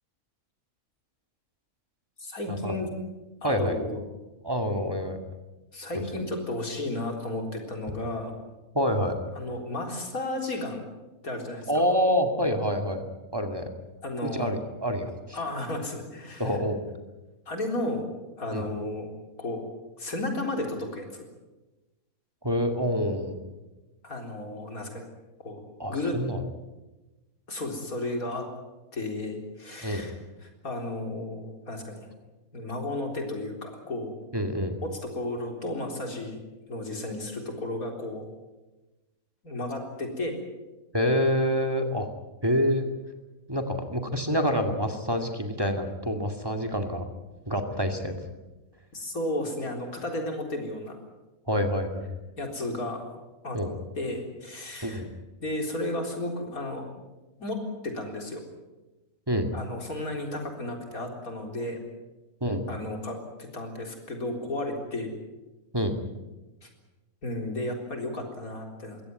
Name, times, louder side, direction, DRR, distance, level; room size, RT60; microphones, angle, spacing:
voice 1, 2.2-2.9 3.4-4.0 5.7-8.3 9.4-10.8 11.2-11.7 14.0-14.6 15.3-16.6 17.5-18.0 18.4-19.1 19.4-19.6 20.0-21.3 24.0-25.1 25.4-25.6 25.9-26.2 27.5-28.5 28.9-30.1 30.4-32.1 32.5-34.1 34.8-36.4 36.7-38.2 39.4-40.4 48.9-51.0 52.4-53.2 53.4-53.6 54.0-55.0 55.4-56.9 57.4-57.6 57.8-58.4 59.5-61.8 62.7-65.1 66.6-66.7 67.2-69.0, left 1 dB, 90° left, 3 dB, 4.5 m, -33 dB
voice 2, 3.4-3.8 4.4-5.2 5.9-6.0 8.7-9.2 11.7-13.7 14.2-15.4 16.4-16.8 18.5-18.7 22.4-23.3 25.8-26.4 29.8-30.0 34.3-34.8 40.9-42.1 42.4-42.8 43.5-47.1 47.5-48.1 51.5-52.1 53.5-53.8 54.8-55.1 59.3-59.5 62.4-62.6 65.7-65.9, equal, 15° right, 5 dB, 2.3 m, -27 dB
22.5 x 17.0 x 9.5 m, 1.1 s
omnidirectional pair, 1.5 m